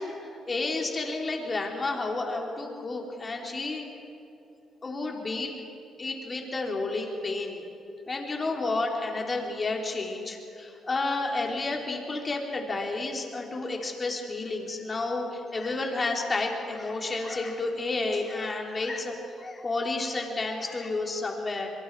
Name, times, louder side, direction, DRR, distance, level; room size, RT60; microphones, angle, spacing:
voice 1, 0.0-3.9 4.8-5.5 6.0-7.6 8.1-21.7, left 3 dB, 30° left, 1 dB, 3.6 m, -31 dB
23.5 x 23.5 x 4.8 m, 2.9 s
cardioid pair, 90°, 0 cm